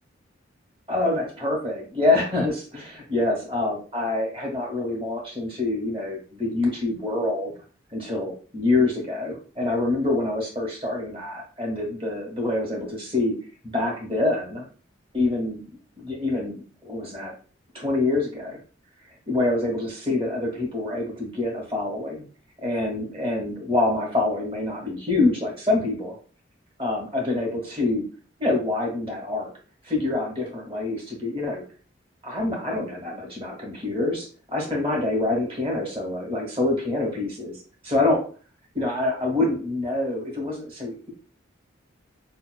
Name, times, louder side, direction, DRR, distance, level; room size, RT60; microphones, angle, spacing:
voice 1, 0.9-7.5 7.9-13.3 13.6-14.7 15.1-15.6 16.0-17.3 17.7-18.6 19.3-22.2 22.6-26.1 26.8-28.0 28.4-29.5 29.8-31.6 32.2-38.2 38.7-41.1, left 2 dB, 30° right, -2 dB, 1.3 m, -26 dB
5.4 x 2.2 x 2.3 m, 0.39 s
head